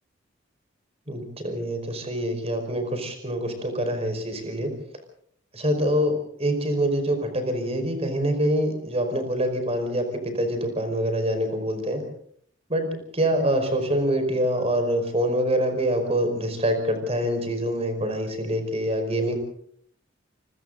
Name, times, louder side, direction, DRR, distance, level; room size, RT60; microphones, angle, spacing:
voice 1, 1.1-4.7 5.5-6.1 6.4-12.0 12.7-12.9 13.1-19.4, equal, 35° right, 6 dB, 5.1 m, -25 dB
27.0 x 24.5 x 4.0 m, 0.64 s
head